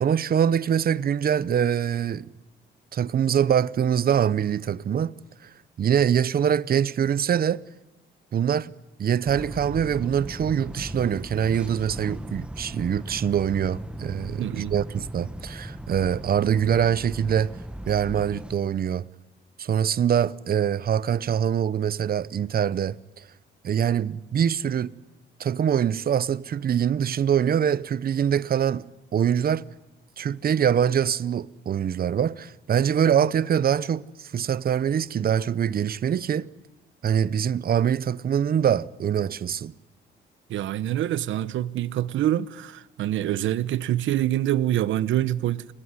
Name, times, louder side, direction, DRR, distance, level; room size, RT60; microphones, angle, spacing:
voice 1, 0.0-2.3 2.9-5.2 5.8-7.6 8.3-8.7 9.0-17.5 17.9-19.1 19.6-23.0 23.6-24.9 25.4-28.9 29.1-29.6 30.2-36.5 37.0-39.7, right 8 dB, 50° right, 0.9 m, -24 dB
sound 1, 9.2-18.5, right 1 dB, 5° right, 1.4 m, -37 dB
voice 2, 14.4-14.8 40.5-45.7, right 12 dB, 75° right, 0.9 m, -25 dB
29.5 x 21.0 x 9.7 m
cardioid pair, 90°, 20 cm